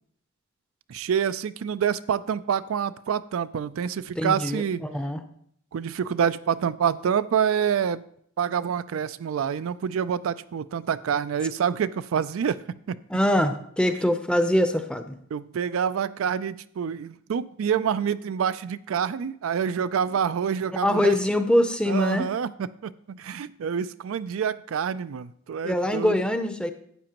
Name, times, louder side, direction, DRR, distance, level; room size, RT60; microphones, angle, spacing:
voice 1, 0.9-4.8 5.7-8.0 8.4-13.0 15.3-21.2 21.9-26.2, right 7 dB, 75° right, 14 dB, 0.4 m, -27 dB
voice 2, 4.2-5.2 13.1-15.2 20.8-22.3 25.6-26.7, left 1 dB, 5° left, 8 dB, 0.6 m, -23 dB
12.0 x 8.6 x 3.0 m, 0.66 s
head